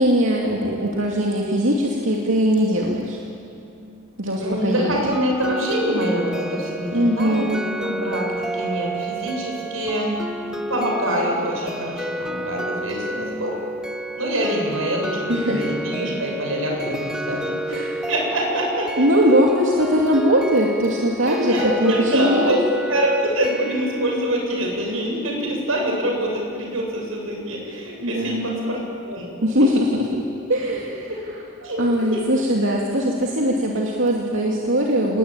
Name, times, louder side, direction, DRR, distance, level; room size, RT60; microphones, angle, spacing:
voice 1, 0.0-3.2 4.2-5.1 6.9-7.6 15.3-15.7 17.3-17.4 17.7-17.9 19.0-22.5 28.0-28.8 29.4-30.0 30.5-31.1 31.8-35.2, equal, 70° right, -2 dB, 2.6 m, -20 dB
voice 2, 4.4-10.2 10.4-13.6 14.2-17.8 18.1-19.4 21.3-22.6 22.9-29.7 30.1-30.2 31.1-31.2 31.6-32.2, equal, 90° right, 0 dB, 7.3 m, -25 dB
sound 1, 5.1-24.3, right 1 dB, 5° right, 0.9 m, -30 dB
27.5 x 21.0 x 8.9 m, 2.6 s
head